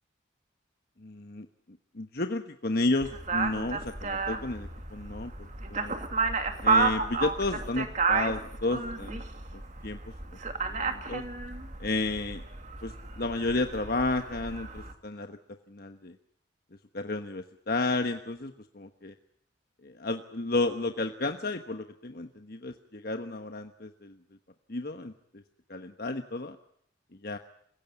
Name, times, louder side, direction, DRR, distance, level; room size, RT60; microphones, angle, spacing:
voice 1, 1.0-1.5 1.9-5.3 5.7-6.0 6.6-9.2 9.5-10.0 10.7-11.2 11.8-12.4 12.8-15.4 15.7-16.1 16.9-19.1 19.8-24.1 24.7-25.4 25.7-26.6 27.2-27.4, left 2 dB, 50° left, 7 dB, 1.2 m, -32 dB
sound 1, 3.0-14.9, right 4 dB, 40° right, 2.5 m, -31 dB
28.5 x 16.5 x 9.7 m, 0.68 s
head